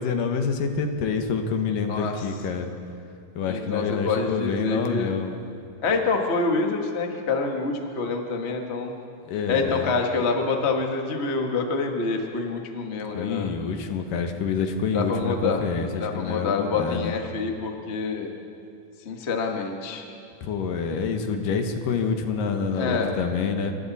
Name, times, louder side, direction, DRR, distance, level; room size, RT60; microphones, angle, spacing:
voice 1, 0.0-2.7 3.4-5.4 9.2-9.9 13.1-17.1 20.4-23.7, left 5 dB, 70° left, 5 dB, 2.8 m, -27 dB
voice 2, 1.9-2.3 3.5-5.1 5.8-8.9 9.5-13.5 14.9-15.6 16.0-18.3 19.0-20.0 22.7-23.1, left 4 dB, 55° left, 2 dB, 0.7 m, -26 dB
26.5 x 23.5 x 4.2 m, 2.5 s
omnidirectional pair, 4.2 m